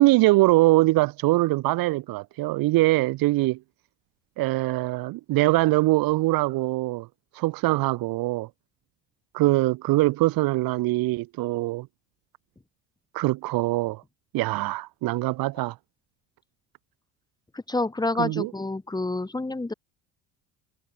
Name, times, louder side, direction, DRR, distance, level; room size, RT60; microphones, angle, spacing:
voice 1, 0.0-3.6 4.4-7.1 7.3-8.5 9.3-11.9 13.1-14.0 14.3-15.7 18.2-18.5, right 19 dB, 70° right, 4.3 m, -22 dB
voice 2, 17.5-19.7, left 2 dB, 10° left, 7.8 m, -28 dB
cardioid pair, 115°, 36 cm